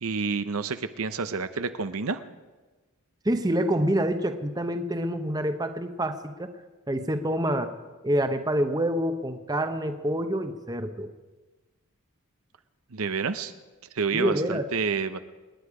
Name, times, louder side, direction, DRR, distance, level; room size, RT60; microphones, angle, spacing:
voice 1, 0.0-2.2 12.9-13.5 13.9-15.2, right 5 dB, 75° right, 11 dB, 0.8 m, -29 dB
voice 2, 3.2-6.5 6.9-7.7 8.0-11.1 14.1-14.7, right 1 dB, 15° right, 8 dB, 0.8 m, -27 dB
27.5 x 10.5 x 4.9 m, 1.2 s
head